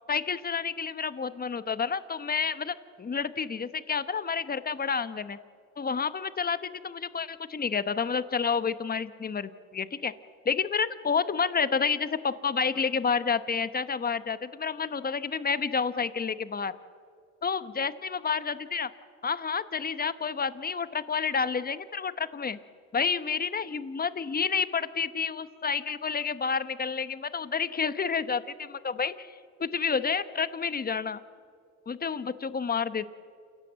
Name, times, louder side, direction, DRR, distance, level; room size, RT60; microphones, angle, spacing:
voice 1, 0.1-5.4 5.8-10.1 10.4-16.7 17.4-18.9 19.2-22.6 22.9-31.2 31.9-33.1, left 5 dB, 30° left, 14 dB, 1.1 m, -29 dB
28.0 x 17.0 x 7.6 m, 2.2 s
cardioid pair, 90°, 30 cm